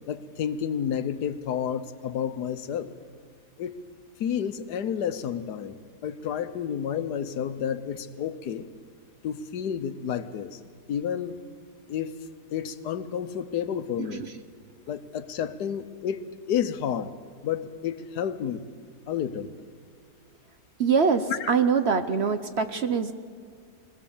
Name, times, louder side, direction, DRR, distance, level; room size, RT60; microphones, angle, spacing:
voice 1, 0.1-2.9 3.6-3.8 4.2-5.8 6.0-8.7 9.2-10.6 10.9-11.3 11.9-12.1 12.5-14.2 14.9-17.1 17.4-18.6 19.1-19.5 21.3-21.5, left 8 dB, 85° left, 12 dB, 1.5 m, -30 dB
voice 2, 20.8-23.1, right 6 dB, 55° right, 9 dB, 0.8 m, -24 dB
22.0 x 17.0 x 7.2 m, 2.2 s
omnidirectional pair, 1.7 m